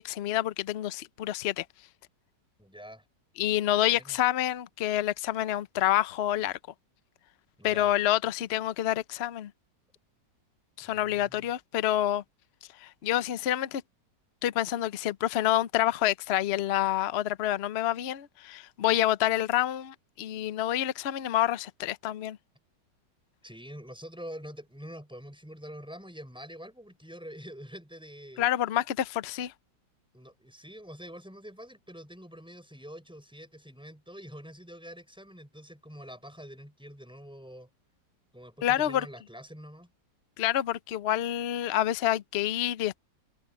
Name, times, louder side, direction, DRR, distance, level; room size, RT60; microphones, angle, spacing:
voice 1, 0.0-1.6 3.4-6.6 7.6-9.5 10.8-12.2 12.8-13.8 14.4-22.4 28.4-29.5 38.6-39.1 40.4-43.0, left 13 dB, 60° left, 0.6 m, -28 dB
voice 2, 2.6-3.0 3.7-4.2 7.6-7.9 10.9-11.5 23.4-28.5 30.1-37.7 38.3-39.9, equal, 5° right, 6.3 m, -46 dB
omnidirectional pair, 2.0 m